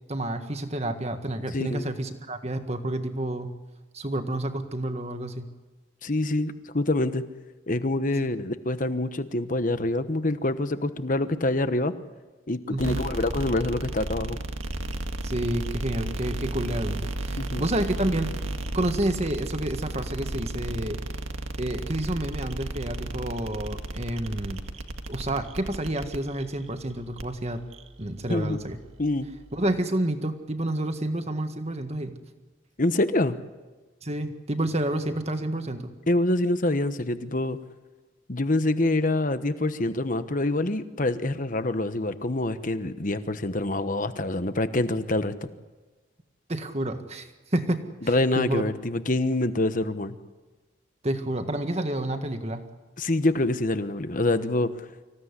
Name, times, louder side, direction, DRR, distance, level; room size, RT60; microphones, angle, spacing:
voice 1, 0.1-3.5 3.9-5.5 12.7-13.0 15.2-18.4 18.7-21.0 21.6-24.6 25.1-27.6 28.0-28.8 29.5-32.1 34.0-36.0 46.5-47.8 48.4-48.6 51.0-52.6, right 1 dB, 30° right, 7 dB, 1.7 m, -29 dB
voice 2, 1.5-1.9 6.0-7.2 7.7-11.9 12.5-14.4 17.4-17.7 28.3-28.6 29.0-29.3 32.8-33.4 36.1-37.6 38.3-45.5 48.1-50.1 53.0-54.9, left 2 dB, 40° left, 11 dB, 1.1 m, -26 dB
sound 1, 12.7-29.8, right 1 dB, 90° right, 1.9 m, -34 dB
26.0 x 16.5 x 9.9 m, 1.3 s
head